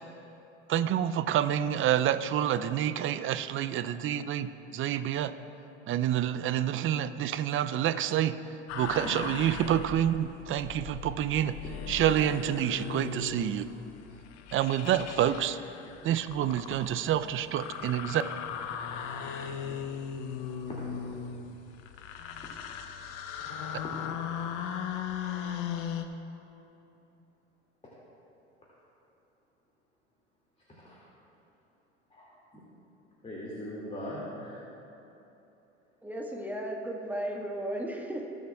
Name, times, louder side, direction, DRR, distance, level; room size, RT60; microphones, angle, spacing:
voice 1, 0.7-5.3 5.9-8.4 8.7-11.5 11.9-13.7 14.5-15.6 16.0-18.2, right 11 dB, 35° right, 13 dB, 0.5 m, -28 dB
sound 1, 8.7-26.0, left 7 dB, 55° left, 0.8 m, -38 dB
voice 2, 19.4-19.8 20.7-21.0 30.8-31.0 32.1-32.3 32.5-32.6 33.2-34.6, equal, 20° left, -7 dB, 2.3 m, -40 dB
voice 3, 36.0-38.3, right 1 dB, 5° right, -1 dB, 1.6 m, -35 dB
20.0 x 7.2 x 2.4 m, 3.0 s
hypercardioid pair, 70°, 35 cm